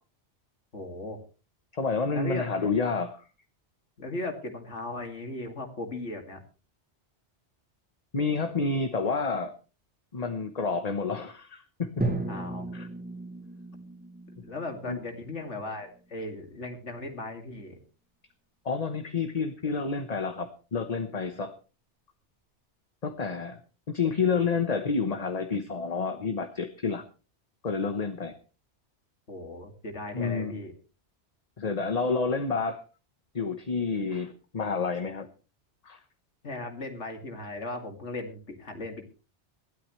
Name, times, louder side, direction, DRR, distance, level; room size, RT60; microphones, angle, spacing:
voice 1, 0.7-1.2 2.1-2.6 4.0-6.4 12.3-12.7 14.4-17.8 29.3-30.7 36.4-39.0, left 2 dB, 85° left, 5 dB, 2.7 m, -37 dB
voice 2, 1.7-3.3 8.1-9.5 10.1-12.1 12.7-12.9 14.9-15.0 18.6-21.5 23.0-23.6 23.9-27.0 27.6-28.4 30.1-30.6 31.6-32.8 33.3-35.3 35.8-36.0, left 4 dB, 35° left, 8 dB, 1.1 m, -29 dB
Drum, 12.0-16.0, right 2 dB, 10° right, 2.7 m, -35 dB
20.5 x 13.0 x 3.2 m, 0.34 s
omnidirectional pair, 1.2 m